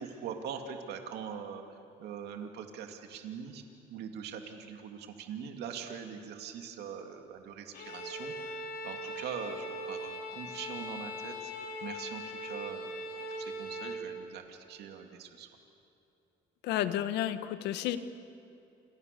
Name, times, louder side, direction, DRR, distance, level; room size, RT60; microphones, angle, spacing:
voice 1, 0.0-3.6 3.9-11.5 11.8-12.8 13.2-15.5, right 7 dB, 75° right, 4 dB, 2.5 m, -42 dB
Bowed string instrument, 7.7-14.1, left 1 dB, 65° left, 3.9 m, -40 dB
voice 2, 16.6-18.0, left 12 dB, 90° left, 11 dB, 1.5 m, -31 dB
28.5 x 28.5 x 6.9 m, 2.7 s
cardioid pair, 110°, 17 cm